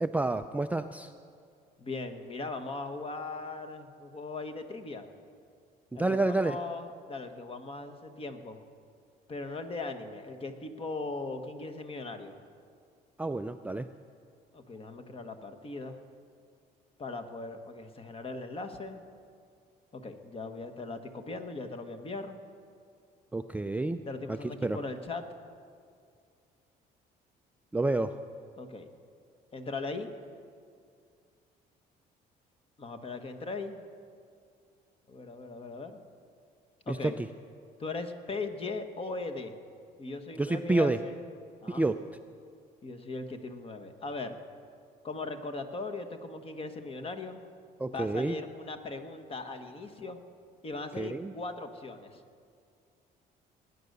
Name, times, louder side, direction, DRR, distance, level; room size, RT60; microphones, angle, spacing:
voice 1, 0.0-1.1 5.9-6.6 13.2-13.9 23.3-24.0 24.3-24.4 24.6-24.8 27.7-28.2 36.9-37.3 40.4-41.0 41.7-42.0 47.8-48.4 51.0-51.3, right 2 dB, 10° right, 8 dB, 0.4 m, -29 dB
voice 2, 1.8-5.1 5.9-8.6 9.3-12.4 14.5-16.0 17.0-19.0 19.9-22.4 24.0-25.3 28.6-28.9 29.5-30.1 32.8-33.8 35.1-36.0 36.9-37.2 37.8-39.5 40.0-41.2 41.6-41.9 42.8-44.4 45.0-47.4 47.9-50.2 50.6-52.2, left 3 dB, 35° left, 8 dB, 1.4 m, -39 dB
19.5 x 9.5 x 6.7 m, 2.3 s
cardioid pair, 110°, 17 cm